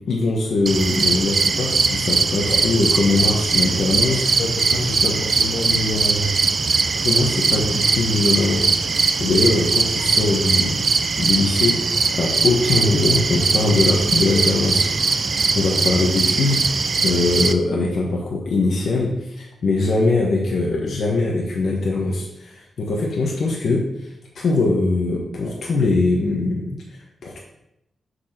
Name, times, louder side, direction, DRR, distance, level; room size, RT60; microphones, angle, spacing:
voice 1, 0.0-4.4 5.0-5.1 7.0-8.6 9.0-10.8 11.2-11.8 12.1-14.9 15.2-16.6 17.0-27.4, left 3 dB, 70° left, -1 dB, 1.2 m, -21 dB
sound 1, 0.7-17.5, right 4 dB, 45° right, 0.5 m, -20 dB
voice 2, 4.4-6.4 9.3-9.4 15.7-15.8, left 1 dB, 90° left, 1 dB, 1.6 m, -27 dB
6.4 x 4.8 x 5.9 m, 0.84 s
wide cardioid pair, 120°, 0 cm